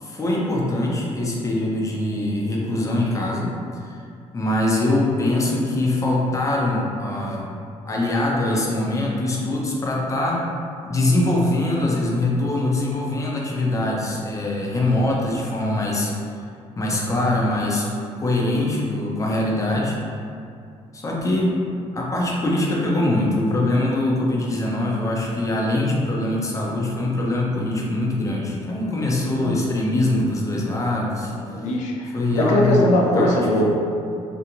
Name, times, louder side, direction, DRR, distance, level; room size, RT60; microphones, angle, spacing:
voice 1, 0.0-4.0 4.3-7.5 7.9-10.5 10.9-16.1 16.7-17.8 18.2-20.0 20.9-31.3 32.1-33.5, left 1 dB, 25° left, -3 dB, 0.5 m, -23 dB
voice 2, 31.5-33.7, left 1 dB, 80° left, -1 dB, 0.4 m, -20 dB
2.9 x 2.1 x 2.5 m, 2.5 s
cardioid pair, 90°, 12 cm